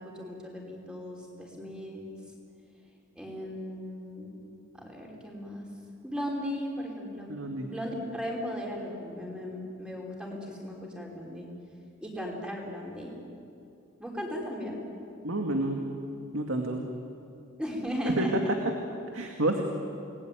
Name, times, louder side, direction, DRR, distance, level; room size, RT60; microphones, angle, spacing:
voice 1, 0.0-2.1 3.1-4.3 4.7-5.7 6.0-7.3 7.6-11.5 12.0-13.2 14.0-14.8 17.6-18.3, equal, 5° right, -2 dB, 5.1 m, -37 dB
voice 2, 7.3-7.7 15.2-15.8 16.3-16.8 18.0-18.3 19.1-19.6, right 2 dB, 80° right, 3 dB, 2.2 m, -29 dB
30.0 x 20.5 x 9.3 m, 2.6 s
head